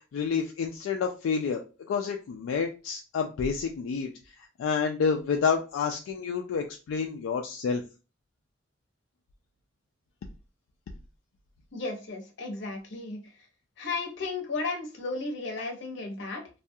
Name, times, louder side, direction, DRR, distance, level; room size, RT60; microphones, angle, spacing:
voice 1, 0.1-1.6 1.9-4.1 4.6-7.8, left 5 dB, 85° left, 3 dB, 0.3 m, -29 dB
voice 2, 11.7-13.2 13.8-16.5, left 3 dB, 65° left, 2 dB, 0.7 m, -34 dB
2.3 x 2.2 x 2.6 m, 0.32 s
head